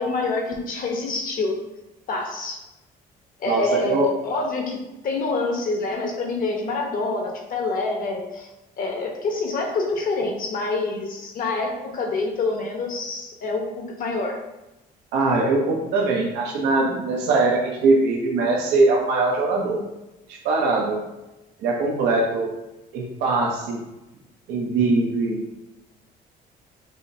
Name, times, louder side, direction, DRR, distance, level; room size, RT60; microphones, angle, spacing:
voice 1, 0.0-1.6 2.1-2.6 3.4-8.5 8.8-14.4, left 3 dB, 55° left, 1 dB, 0.9 m, -26 dB
voice 2, 3.5-4.1 15.1-19.8 20.3-21.0 21.6-22.5 22.9-23.8 24.5-25.4, right 3 dB, 85° right, -2 dB, 0.7 m, -21 dB
4.8 x 2.7 x 2.7 m, 0.99 s
cardioid pair, 110°, 17 cm